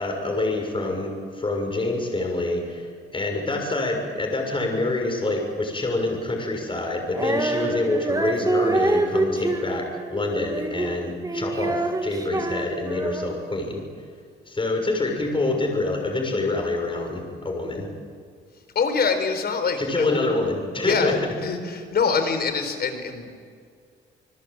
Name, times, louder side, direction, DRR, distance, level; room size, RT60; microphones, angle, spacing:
voice 1, 0.0-13.8 14.5-17.9 19.8-21.2, left 2 dB, 25° left, 2 dB, 6.6 m, -26 dB
Female singing, 7.1-13.5, right 2 dB, 20° right, 2.5 m, -26 dB
voice 2, 18.7-20.2 20.8-23.4, left 5 dB, 50° left, 8 dB, 4.6 m, -25 dB
28.5 x 20.0 x 9.0 m, 2.1 s
cardioid pair, 90°, 20 cm